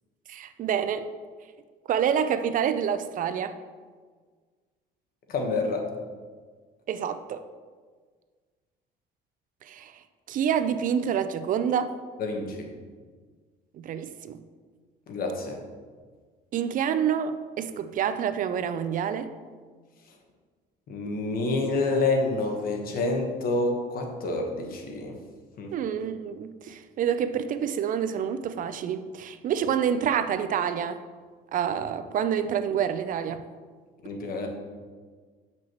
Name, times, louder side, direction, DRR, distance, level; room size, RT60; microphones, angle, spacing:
voice 1, 0.3-1.0 1.9-3.5 6.9-7.4 9.7-9.9 10.3-11.9 13.8-14.4 16.5-19.3 25.7-31.0 31.5-33.4, right 8 dB, 55° right, 11 dB, 0.4 m, -27 dB
voice 2, 5.3-5.8 12.2-12.7 15.1-15.6 20.9-25.1 25.6-25.7 34.0-34.5, left 2 dB, 60° left, 2 dB, 1.2 m, -28 dB
7.5 x 5.9 x 3.0 m, 1.5 s
cardioid pair, 110°, 17 cm